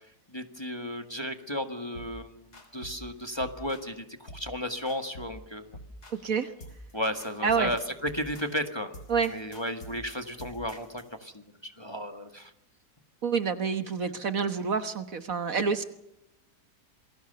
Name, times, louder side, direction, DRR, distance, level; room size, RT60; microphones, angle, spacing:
voice 1, 0.3-5.8 6.9-8.9 9.3-12.5, equal, 15° left, 6 dB, 1.7 m, -34 dB
sound 1, 1.9-2.2 2.5-3.0 3.4-3.9 4.3-4.5 4.9-5.4 5.7-6.3 6.6-6.9 7.2-11.1, equal, 70° left, 4.2 m, -47 dB
voice 2, 13.2-15.8, right 5 dB, 55° right, 9 dB, 1.7 m, -27 dB
28.0 x 21.5 x 6.9 m, 0.82 s
omnidirectional pair, 1.8 m